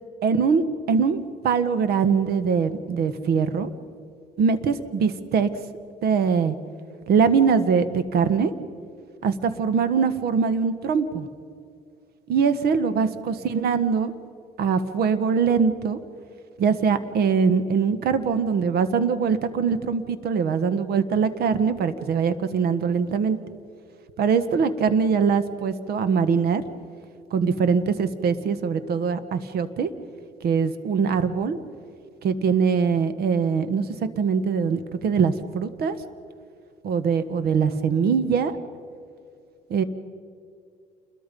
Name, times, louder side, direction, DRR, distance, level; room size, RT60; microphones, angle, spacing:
voice 1, 0.2-3.7 4.4-5.5 6.0-6.5 7.1-8.5 9.2-11.3 12.3-14.1 14.6-16.0 16.6-23.4 24.2-26.6 27.3-29.9 30.4-31.6 32.2-33.9 34.2-36.0 36.8-38.6 39.7-39.8, right 6 dB, 65° right, 13 dB, 1.4 m, -22 dB
28.0 x 22.0 x 5.4 m, 2.4 s
cardioid pair, 110°, 17 cm